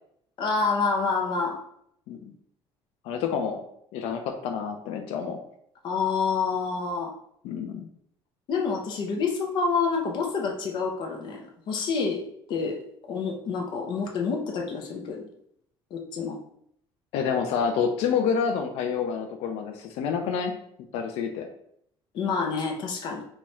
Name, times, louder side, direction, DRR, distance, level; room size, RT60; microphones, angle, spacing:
voice 1, 0.4-1.6 5.8-7.1 8.5-12.2 12.5-12.8 13.1-15.3 15.9-16.4 22.1-23.2, left 5 dB, 50° left, 2 dB, 0.6 m, -28 dB
voice 2, 3.0-3.6 3.9-5.4 7.4-7.9 17.1-20.5 20.9-21.5, left 6 dB, 90° left, 4 dB, 0.5 m, -28 dB
4.1 x 2.4 x 3.1 m, 0.69 s
cardioid pair, 175°, 10 cm